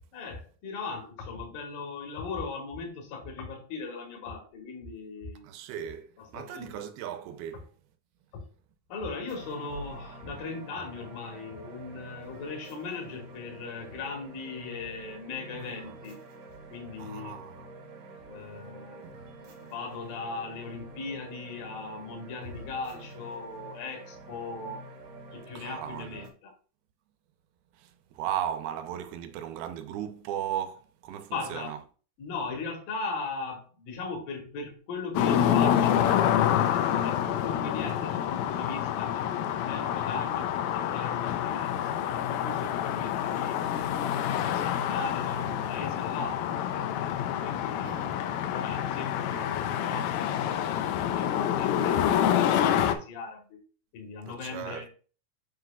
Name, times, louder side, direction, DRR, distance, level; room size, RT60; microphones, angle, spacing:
voice 1, 0.1-5.4 6.2-6.7 8.9-16.2 16.7-17.3 18.2-19.1 19.4-24.8 25.3-26.5 31.3-31.8 32.2-43.6 44.2-47.9 48.5-53.6 53.9-54.9, left 4 dB, 65° left, 3.3 m, -38 dB
voice 2, 5.4-7.6 15.6-16.0 17.0-17.7 25.6-26.2 27.7-31.8 47.9-48.3 54.3-54.9, right 10 dB, 80° right, 2.6 m, -37 dB
sound 1, 9.3-26.3, right 2 dB, 60° right, 2.7 m, -46 dB
sound 2, 35.2-53.0, left 10 dB, 85° left, 2.4 m, -27 dB
7.6 x 5.8 x 2.3 m
omnidirectional pair, 4.4 m